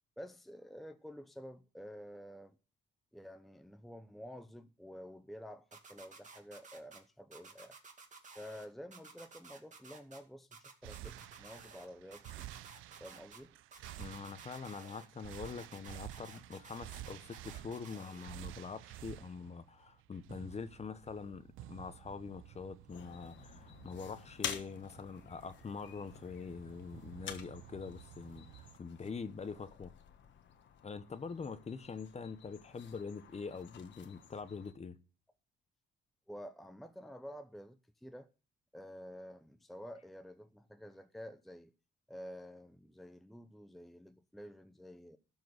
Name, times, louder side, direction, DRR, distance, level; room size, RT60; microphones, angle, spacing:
voice 1, 0.2-2.6 3.1-7.8 8.3-12.5 13.0-13.6 36.3-38.3 38.7-41.7 42.1-45.2, equal, ahead, 0.7 m, -50 dB
sound 1, 5.7-7.0 7.3-8.6 8.9-10.2 10.5-11.9 12.1-13.4 13.7-15.0 15.3-18.2, right 4 dB, 40° right, 2.3 m, -54 dB
sound 2, 10.8-28.8, right 15 dB, 90° right, 0.5 m, -52 dB
voice 2, 14.0-29.9 30.8-35.0, left 5 dB, 35° left, 1.0 m, -44 dB
sound 3, 22.9-34.7, left 8 dB, 65° left, 1.3 m, -49 dB
12.5 x 4.7 x 7.9 m
cardioid pair, 90°, 20 cm